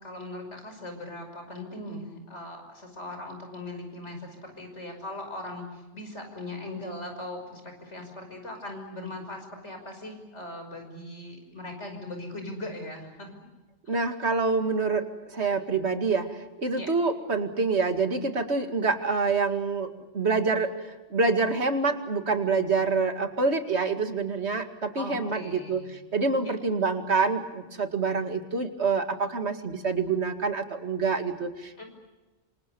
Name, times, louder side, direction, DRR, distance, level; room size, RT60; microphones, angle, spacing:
voice 1, 0.0-13.5 16.7-16.9 24.9-26.0 26.4-26.5 31.8-31.9, left 1 dB, 85° left, 4 dB, 6.0 m, -39 dB
voice 2, 13.9-31.8, right 4 dB, 70° right, 7 dB, 2.5 m, -27 dB
27.0 x 26.5 x 7.0 m, 1.1 s
omnidirectional pair, 1.2 m